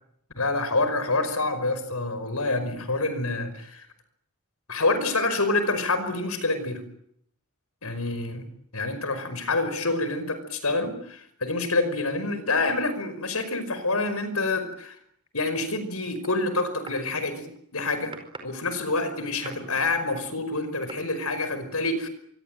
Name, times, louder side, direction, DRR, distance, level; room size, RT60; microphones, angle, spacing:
voice 1, 0.4-3.9 4.7-6.8 7.8-8.4 8.7-15.0 15.3-17.5 17.7-18.1 18.4-22.1, left 2 dB, 85° left, 12 dB, 5.3 m, -27 dB
sound 1, 16.2-17.0 17.6-18.7 19.0-20.0 20.8-21.0, right 3 dB, 25° right, 4.9 m, -44 dB
25.5 x 24.5 x 9.1 m, 0.72 s
head